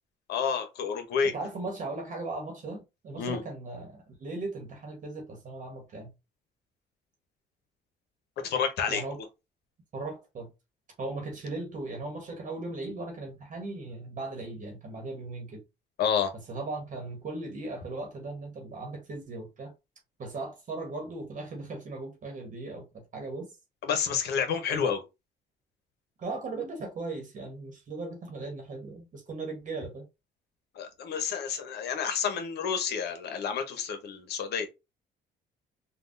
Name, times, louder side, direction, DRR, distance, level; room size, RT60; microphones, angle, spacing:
voice 1, 0.3-1.3 3.2-3.4 8.4-9.0 16.0-16.3 23.8-25.0 30.7-34.7, left 7 dB, 70° left, 0.8 m, -29 dB
voice 2, 1.2-6.1 8.9-9.2 9.9-10.5 11.0-15.6 16.3-19.7 20.2-23.6 24.7-24.8 26.2-30.1, right 3 dB, 45° right, 1.1 m, -38 dB
3.4 x 2.3 x 2.6 m
cardioid pair, 95°, 18 cm